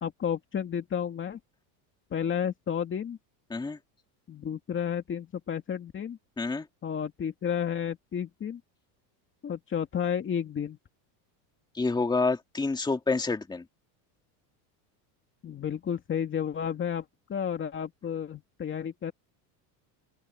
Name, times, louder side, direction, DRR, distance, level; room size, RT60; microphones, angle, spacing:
voice 1, 0.0-1.4 2.1-3.2 4.3-6.2 6.8-8.6 9.4-10.8 15.4-17.0 17.3-19.1, left 8 dB, 25° left, 2.4 m, -32 dB
voice 2, 11.7-13.6, left 3 dB, 10° left, 2.4 m, -28 dB
open air
supercardioid pair, 150°, 50 cm